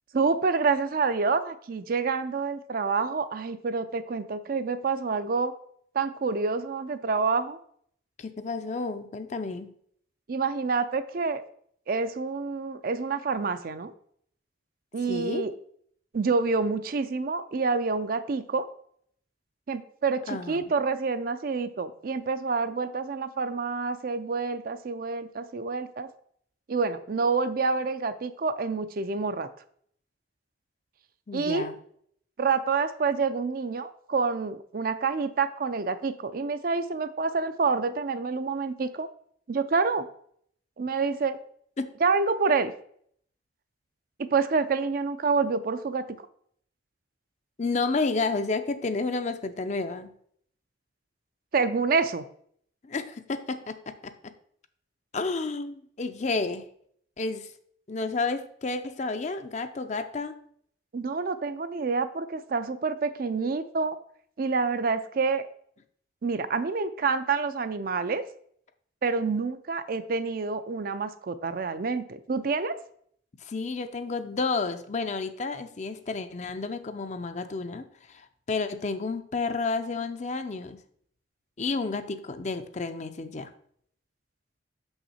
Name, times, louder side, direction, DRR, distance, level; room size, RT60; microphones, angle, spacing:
voice 1, 0.1-5.5 5.9-7.6 10.3-11.4 11.9-13.9 14.9-15.5 16.1-18.7 19.7-26.1 26.7-29.5 31.3-31.6 32.4-39.1 39.5-40.1 40.8-41.4 42.0-42.7 44.2-46.1 51.5-52.2 60.9-64.0 64.4-65.5 66.2-68.2 69.0-72.8, right 4 dB, 50° right, 11 dB, 0.4 m, -27 dB
voice 2, 8.2-9.7 15.1-15.5 20.3-20.6 31.3-31.8 41.8-41.9 47.6-50.1 52.8-54.3 55.1-56.6 57.2-57.5 57.9-60.4 73.4-80.8 81.6-83.5, left 3 dB, 40° left, 9 dB, 0.5 m, -31 dB
6.4 x 5.6 x 4.2 m, 0.65 s
head